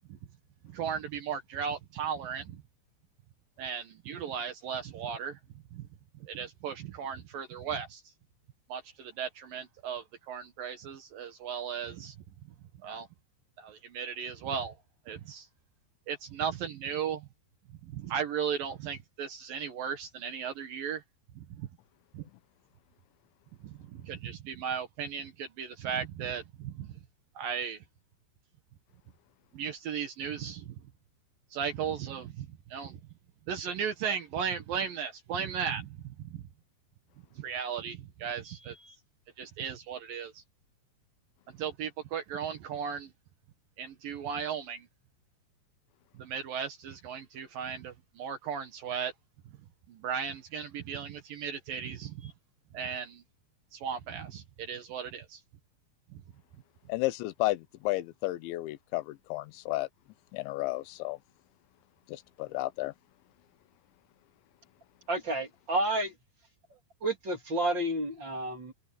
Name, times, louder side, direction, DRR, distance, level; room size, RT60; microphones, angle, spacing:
voice 1, 0.7-2.6 3.6-5.4 5.7-5.9 6.2-8.0 8.7-12.2 12.8-13.1 13.6-14.7 15.1-15.5 16.1-17.3 17.8-21.0 21.4-21.7 22.1-22.2 23.6-26.9 27.4-27.8 29.5-30.7 31.5-33.0 33.5-36.4 37.4-38.9 39.4-40.4 41.6-43.1 43.8-44.9 46.2-49.1 49.9-52.3 52.7-53.2 53.7-55.4 56.1-56.2, right 7 dB, 65° right, 2.6 m, -36 dB
voice 2, 56.9-59.9 60.3-61.2 62.1-62.9, left 19 dB, 85° left, 3.1 m, -32 dB
voice 3, 65.1-66.1 67.0-68.7, right 1 dB, 30° right, 3.2 m, -30 dB
open air
omnidirectional pair, 5.1 m